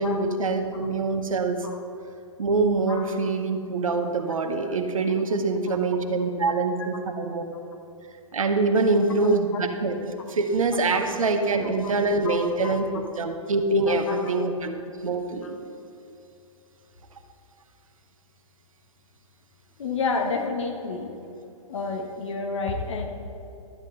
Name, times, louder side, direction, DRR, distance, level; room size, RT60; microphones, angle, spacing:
voice 1, 0.0-1.7 2.4-7.4 8.3-14.7 15.0-15.5, right 3 dB, 70° right, 5 dB, 1.0 m, -24 dB
voice 2, 8.9-9.6 10.9-11.0 11.8-11.9 12.2-12.8 13.9-14.2 15.4-15.5 19.8-21.1 21.7-23.0, left 4 dB, 55° left, 3 dB, 1.5 m, -30 dB
12.5 x 8.2 x 4.0 m, 2.7 s
figure-of-eight pair, 120°, 18 cm